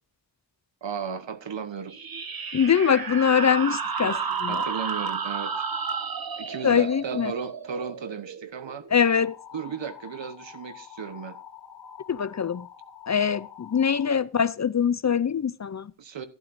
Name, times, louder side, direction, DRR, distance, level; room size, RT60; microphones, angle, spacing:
voice 1, 0.8-2.0 4.0-4.2 4.5-5.6 6.4-8.8 9.5-11.4 16.0-16.3, right 6 dB, 75° right, 1.2 m, -35 dB
sound 1, 1.9-9.1, right 5 dB, 50° right, 1.1 m, -32 dB
voice 2, 2.5-4.6 6.6-7.3 8.9-9.4 12.1-12.7 13.1-15.9, left 7 dB, 40° left, 0.4 m, -23 dB
sound 2, 9.1-14.1, left 9 dB, 70° left, 2.2 m, -46 dB
14.5 x 11.5 x 2.6 m
wide cardioid pair, 130°, 45 cm